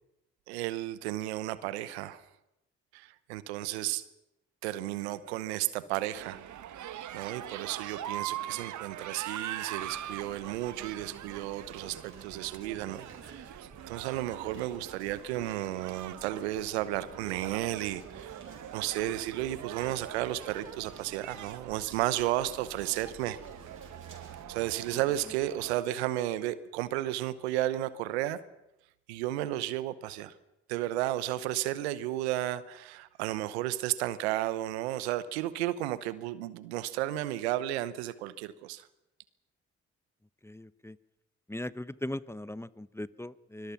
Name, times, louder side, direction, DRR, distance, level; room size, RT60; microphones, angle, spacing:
voice 1, 0.5-2.2 2.9-4.0 4.6-6.4 7.1-18.4 18.7-23.4 24.5-28.4 29.1-30.3 30.7-38.9, right 14 dB, 90° right, 16 dB, 0.9 m, -33 dB
sound 1, 6.1-25.8, right 11 dB, 65° right, 1.2 m, -43 dB
sound 2, 9.8-24.4, right 2 dB, 40° right, 6.8 m, -53 dB
voice 2, 40.4-41.0 41.5-43.7, left 1 dB, 10° left, 18 dB, 0.9 m, -39 dB
25.0 x 21.5 x 5.9 m, 0.87 s
hypercardioid pair, 45°, 32 cm